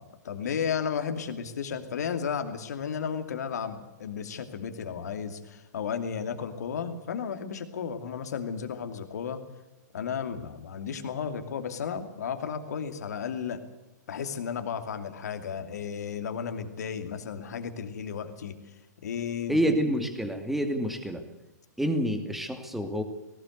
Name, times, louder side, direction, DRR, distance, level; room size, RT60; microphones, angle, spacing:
voice 1, 0.0-9.4 9.9-13.6 14.1-18.5 19.0-19.6, left 7 dB, 65° left, 8 dB, 2.5 m, -33 dB
voice 2, 19.5-21.2 21.8-23.0, equal, ahead, 7 dB, 2.6 m, -28 dB
19.0 x 18.0 x 8.0 m, 1.0 s
figure-of-eight pair, 115°, 10 cm